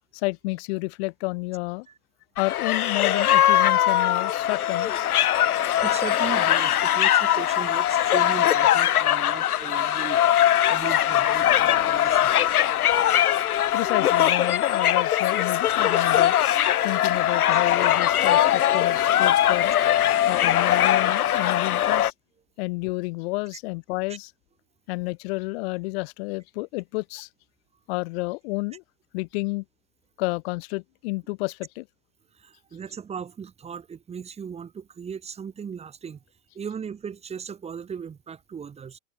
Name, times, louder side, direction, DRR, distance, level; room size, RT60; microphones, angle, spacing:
voice 1, 0.1-1.9 2.4-5.1 13.7-16.3 16.8-19.7 20.3-22.1 22.6-24.3 24.9-27.3 27.9-28.8 29.1-29.6 30.2-31.9, left 25 dB, 45° left, 2.2 m, -30 dB
sound 1, 2.4-22.1, left 11 dB, 90° left, 2.8 m, -21 dB
voice 2, 5.8-10.2 10.7-12.3 32.4-36.2 36.6-39.0, right 7 dB, 15° right, 3.6 m, -37 dB
supercardioid pair, 150°, 43 cm